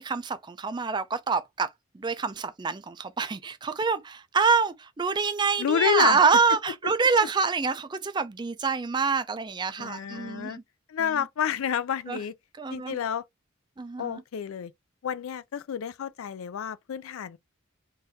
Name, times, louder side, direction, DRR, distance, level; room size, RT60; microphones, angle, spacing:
voice 1, 0.0-10.6 11.0-11.1 12.1-12.2 12.6-13.0 13.8-14.1, right 5 dB, 20° right, 0.3 m, -26 dB
voice 2, 5.6-6.2 9.8-10.6 10.9-12.3 12.7-13.2 14.0-14.7 15.0-17.4, left 8 dB, 80° left, 0.4 m, -29 dB
3.7 x 2.5 x 2.7 m
head